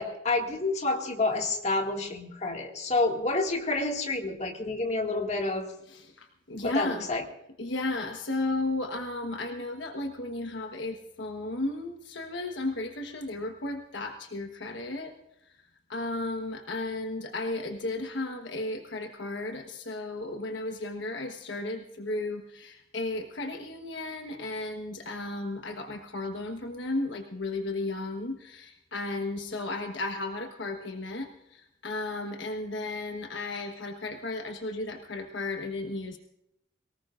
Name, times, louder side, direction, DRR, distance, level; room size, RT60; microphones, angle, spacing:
voice 1, 0.0-5.7 6.6-7.2, left 2 dB, 35° left, 2 dB, 2.1 m, -29 dB
voice 2, 5.9-7.1 7.6-15.1 15.9-36.2, left 2 dB, 65° left, 5 dB, 1.3 m, -34 dB
23.5 x 18.5 x 2.5 m, 0.81 s
head